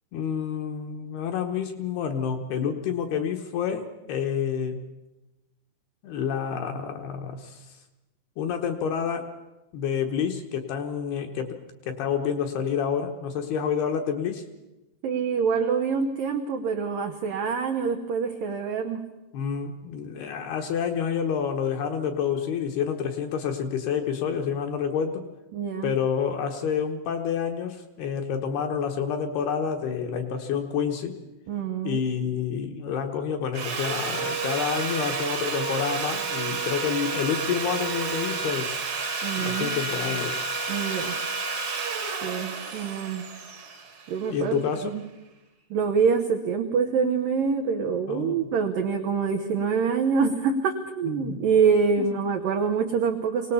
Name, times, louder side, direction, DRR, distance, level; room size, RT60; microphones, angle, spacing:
voice 1, 0.1-4.8 6.0-7.7 8.4-9.3 9.7-11.6 11.9-14.4 19.3-25.2 25.8-31.1 31.8-38.8 39.4-40.5 44.3-44.9 48.1-48.5 51.0-51.5 52.0-52.1, left 7 dB, 70° left, 5 dB, 2.6 m, -28 dB
voice 2, 15.0-19.0 25.5-26.0 31.5-32.0 39.2-39.8 40.7-41.1 42.2-43.3 44.1-44.6 44.9-45.0 45.7-53.5, right 6 dB, 90° right, 5 dB, 1.9 m, -25 dB
Sawing, 33.5-44.6, right 4 dB, 50° right, 1.6 m, -30 dB
24.0 x 18.5 x 7.0 m, 1.0 s
omnidirectional pair, 5.6 m